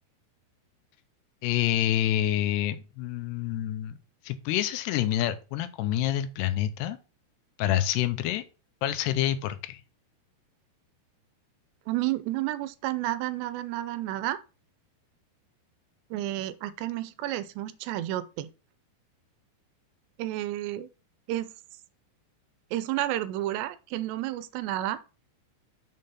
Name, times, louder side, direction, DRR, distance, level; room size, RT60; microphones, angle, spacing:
voice 1, 1.4-4.0 4.2-7.0 7.6-8.4 8.8-9.8, left 12 dB, 80° left, 2.7 m, -27 dB
voice 2, 11.9-14.4 16.1-18.5 20.2-20.9 21.3-21.5 22.7-25.0, right 14 dB, 90° right, 2.8 m, -31 dB
6.6 x 5.4 x 5.6 m
omnidirectional pair, 4.9 m